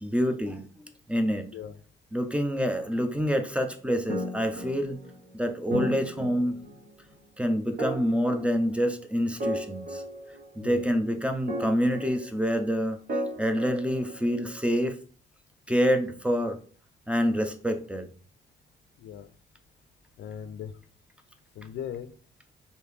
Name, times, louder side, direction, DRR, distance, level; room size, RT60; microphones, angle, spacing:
voice 1, 0.0-1.4 2.1-5.0 5.3-6.5 7.4-10.0 10.6-13.0 13.4-14.9 15.7-16.6 17.1-18.1, equal, 5° right, 7 dB, 0.5 m, -27 dB
sound 1, 4.1-5.3 5.7-6.9 7.8-9.0 9.4-10.8 11.5-12.7 13.1-14.5, equal, 50° right, 1.2 m, -35 dB
voice 2, 10.6-10.9 19.0-19.3 20.2-20.8 21.5-22.1, left 9 dB, 65° left, 11 dB, 0.4 m, -39 dB
3.1 x 2.7 x 3.3 m, 0.41 s
cardioid pair, 90°, 20 cm